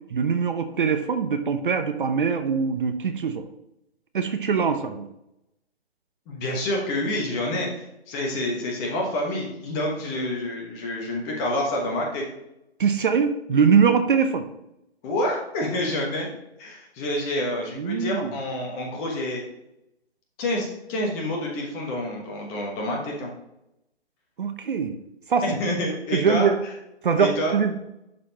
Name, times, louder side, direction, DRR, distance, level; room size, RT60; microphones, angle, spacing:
voice 1, 0.1-3.4 4.1-5.1 12.8-14.5 17.7-18.3 24.4-25.0 25.3-25.4 26.1-26.6 27.0-27.7, right 6 dB, 50° right, 8 dB, 0.6 m, -22 dB
voice 2, 6.3-12.3 15.0-16.3 16.6-19.4 20.4-23.3 25.4-26.5 27.2-27.5, left 1 dB, 15° left, -1 dB, 1.1 m, -28 dB
11.0 x 4.2 x 2.8 m, 0.85 s
figure-of-eight pair, 150°, 33 cm